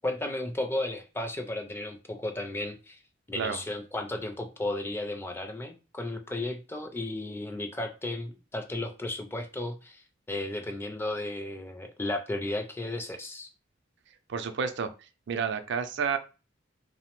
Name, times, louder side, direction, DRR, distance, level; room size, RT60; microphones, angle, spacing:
voice 1, 0.0-3.0 3.3-13.5, left 2 dB, 10° left, 5 dB, 0.4 m, -34 dB
voice 2, 14.3-14.9 15.3-16.2, right 6 dB, 65° right, 9 dB, 0.4 m, -30 dB
2.8 x 2.0 x 2.9 m, 0.32 s
head